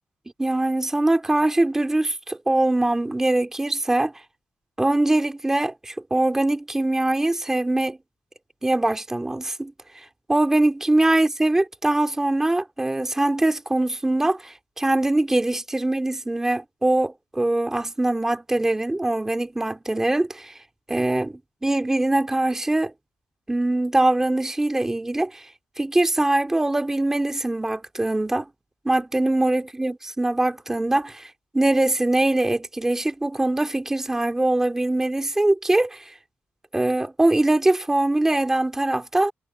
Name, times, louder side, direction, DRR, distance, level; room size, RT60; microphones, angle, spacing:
voice 1, 0.4-4.1 4.8-8.0 8.6-9.7 10.3-20.5 20.9-22.9 23.5-25.4 25.8-28.5 28.8-36.1 36.7-39.3, right 2 dB, 10° right, 2.5 m, -22 dB
cardioid pair, 145°, 4 cm